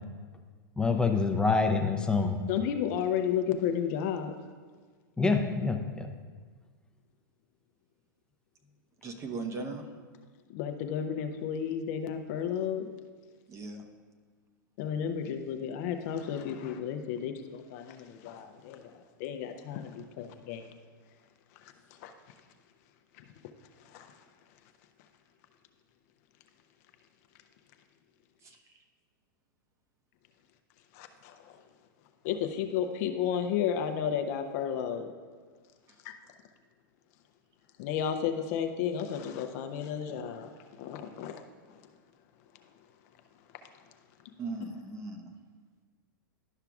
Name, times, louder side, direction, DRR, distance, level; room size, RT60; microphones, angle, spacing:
voice 1, 0.8-2.3 5.2-6.1, left 4 dB, 5° left, 4 dB, 0.6 m, -26 dB
voice 2, 2.5-4.3 10.5-12.8 14.8-20.7 22.0-22.1 23.8-24.2 30.9-31.6 32.2-35.1 36.0-36.1 37.8-41.4 41.7-41.8, left 8 dB, 50° left, 6 dB, 0.6 m, -33 dB
voice 3, 9.0-9.8 13.5-13.9 28.4-28.8 44.4-45.3, right 3 dB, 25° right, 4 dB, 0.8 m, -38 dB
11.5 x 5.7 x 2.4 m, 1.5 s
hypercardioid pair, 110°, 11 cm